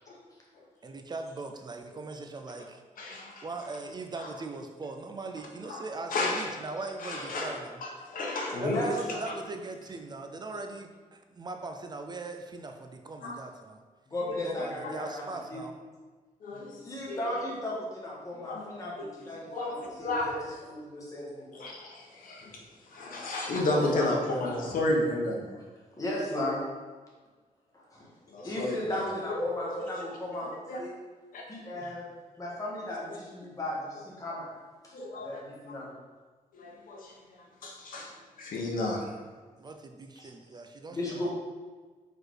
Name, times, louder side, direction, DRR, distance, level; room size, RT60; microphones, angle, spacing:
voice 1, 0.8-2.8 3.4-7.8 8.6-13.8 14.4-15.7 39.6-41.3, right 3 dB, 30° right, 5 dB, 0.5 m, -40 dB
voice 2, 3.0-3.4 4.2-4.3 5.7-5.8 6.1-6.5 7.0-7.5 7.8-8.8 9.2-9.3 13.2-13.3 14.2-14.4 16.4-17.2 18.4-19.1 19.5-20.3 21.5-22.5 22.9-25.6 28.3-29.8 30.7-30.8 31.3-31.4 31.7-31.8 34.9-35.4 36.5-37.1 37.6-38.1 38.4-39.0, left 2 dB, 75° left, -1 dB, 1.3 m, -32 dB
voice 3, 8.6-9.2 14.1-15.2 15.5-15.6 16.8-20.3 20.6-21.5 23.5-24.7 26.0-26.7 27.7-28.1 28.4-30.5 30.8-30.9 31.5-32.1 32.4-34.5 34.8-35.9 38.5-38.6 40.2-40.3 40.9-41.3, left 1 dB, 25° left, -5 dB, 1.6 m, -35 dB
4.9 x 4.3 x 4.7 m, 1.4 s
wide cardioid pair, 160°, 14 cm